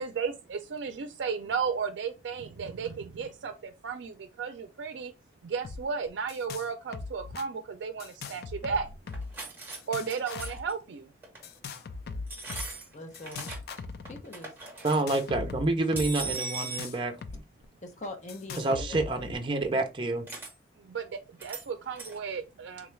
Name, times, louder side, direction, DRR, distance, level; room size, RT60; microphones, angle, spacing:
voice 1, 0.0-5.1 5.4-8.9 9.9-11.1 20.8-22.9, right 5 dB, 85° right, 0.4 m, -34 dB
sound 1, 5.6-5.8 6.1-6.7 6.9-7.5 8.0-9.4 9.7-10.6 11.4-12.7 13.1-14.2 14.9-17.4 17.6-17.7 18.3-19.4, left 4 dB, 55° left, 0.3 m, -40 dB
sound 2, 9.1-9.8 10.0-10.7 11.2-11.5 12.3-13.8 14.1-15.0 16.0-16.9 20.3-20.5 21.4-21.7 21.9-22.2, right 3 dB, 10° right, 0.9 m, -39 dB
voice 2, 12.9-13.5 14.1-14.5 17.8-19.1, left 1 dB, 40° left, 0.7 m, -42 dB
voice 3, 14.8-17.2 18.6-20.2, right 2 dB, 25° right, 0.5 m, -28 dB
3.6 x 2.3 x 3.1 m
head